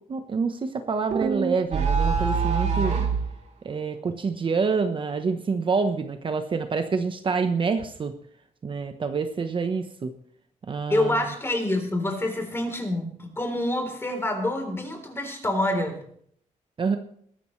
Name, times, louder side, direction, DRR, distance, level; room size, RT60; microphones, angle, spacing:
voice 1, 0.1-2.9 3.6-8.1 8.6-10.1 10.7-11.2 16.8-17.0, right 5 dB, 35° right, 7 dB, 1.1 m, -27 dB
sound 1, 1.1-3.3, right 5 dB, 55° right, 3.0 m, -24 dB
voice 2, 10.9-16.0, left 1 dB, 15° left, 3 dB, 3.8 m, -27 dB
22.0 x 13.0 x 3.3 m, 0.63 s
cardioid pair, 130°, 14 cm